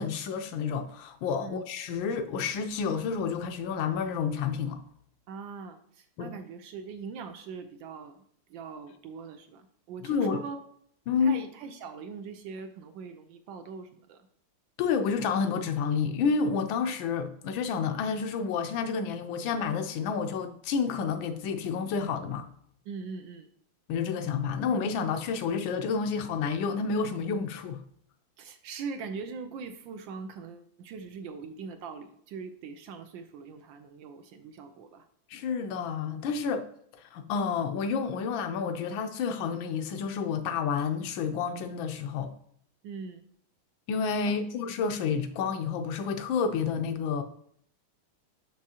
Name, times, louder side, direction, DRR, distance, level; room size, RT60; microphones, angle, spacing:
voice 1, 0.0-4.8 6.2-6.3 10.0-10.4 11.1-11.4 14.8-22.5 23.9-27.8 35.3-36.6 36.9-42.3 43.9-47.2, left 5 dB, 75° left, 1.3 m, -29 dB
voice 2, 5.3-8.2 8.5-10.6 11.2-14.3 22.9-23.5 28.4-35.1 42.8-43.2, right 5 dB, 75° right, 1.2 m, -41 dB
6.3 x 6.1 x 2.8 m
omnidirectional pair, 2.3 m